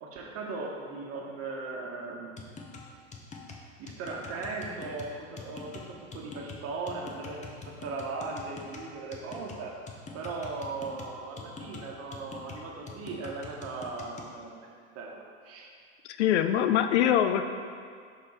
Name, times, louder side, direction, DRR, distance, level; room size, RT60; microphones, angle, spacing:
voice 1, 0.0-2.4 3.8-9.8 10.1-14.7 14.9-15.7, right 3 dB, 45° right, -1 dB, 1.1 m, -38 dB
sound 1, 2.4-14.3, left 4 dB, 20° left, 0.7 m, -45 dB
voice 2, 16.0-17.4, left 10 dB, 80° left, 9 dB, 0.5 m, -23 dB
6.5 x 3.6 x 4.2 m, 2.1 s
hypercardioid pair, 100°, 34 cm